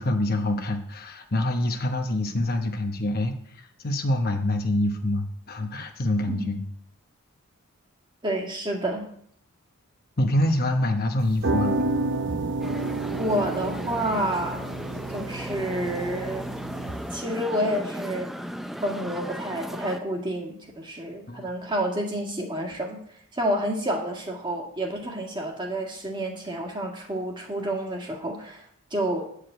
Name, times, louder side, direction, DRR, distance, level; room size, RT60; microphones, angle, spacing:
voice 1, 0.0-6.6 10.2-11.8 21.3-21.5, left 1 dB, 45° left, 4 dB, 1.0 m, -26 dB
voice 2, 6.3-6.6 8.2-9.1 13.2-14.6 15.1-16.5 17.1-18.3 18.8-23.0 23.3-28.7 28.9-29.2, right 1 dB, 20° right, 1 dB, 1.9 m, -29 dB
sound 1, 11.2-17.2, right 2 dB, 55° right, 0.7 m, -30 dB
sound 2, 12.6-20.0, equal, ahead, 0.4 m, -35 dB
9.6 x 5.0 x 7.9 m, 0.65 s
head